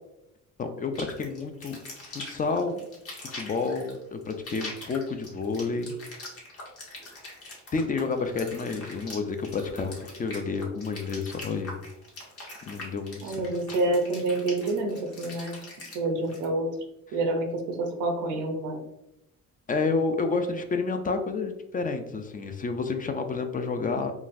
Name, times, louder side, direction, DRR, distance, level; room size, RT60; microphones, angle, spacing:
voice 1, 0.6-1.8 2.0-2.9 3.2-5.9 7.7-11.7 12.6-13.5 19.7-24.1, left 4 dB, 30° left, 6 dB, 0.4 m, -30 dB
sound 1, 0.9-16.5, left 2 dB, 50° left, 1.3 m, -43 dB
voice 2, 13.2-15.6 15.9-16.7 17.1-18.8, right 2 dB, 85° right, 4 dB, 0.7 m, -28 dB
3.8 x 2.3 x 2.5 m, 0.88 s
cardioid pair, 90°, 30 cm